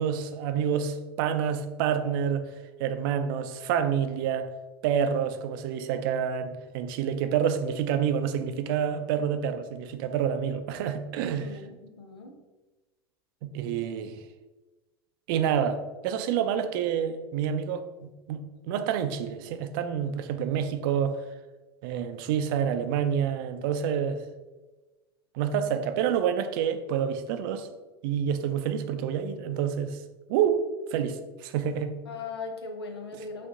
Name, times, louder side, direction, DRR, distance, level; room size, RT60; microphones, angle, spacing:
voice 1, 0.0-2.4 2.8-4.5 4.8-11.6 13.4-14.2 15.3-21.2 21.8-24.2 25.3-27.7 28.0-30.0 30.3-31.9, right 8 dB, 60° right, 9 dB, 0.5 m, -28 dB
voice 2, 11.2-12.3 32.1-33.5, left 4 dB, 85° left, 4 dB, 0.7 m, -39 dB
5.3 x 2.6 x 3.7 m, 1.2 s
hypercardioid pair, 85°, 13 cm